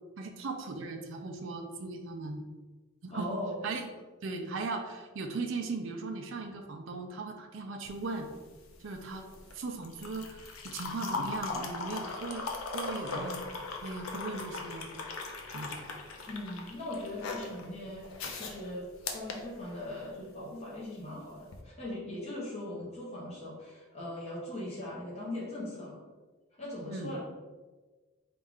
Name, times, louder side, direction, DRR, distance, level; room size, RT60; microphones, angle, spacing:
voice 1, 0.2-2.4 3.0-3.9 4.2-8.3 8.8-9.3 9.5-12.5 12.7-13.4 13.8-14.9 15.5-15.8 26.9-27.1, right 3 dB, 65° right, 3 dB, 0.5 m, -38 dB
voice 2, 3.1-3.7 16.3-18.1 18.4-26.0 26.6-27.2, left 1 dB, 30° left, -7 dB, 1.0 m, -40 dB
sound 1, 7.9-20.2 21.4-21.6, left 3 dB, 90° left, 0.6 m, -39 dB
4.2 x 2.5 x 3.5 m, 1.3 s
head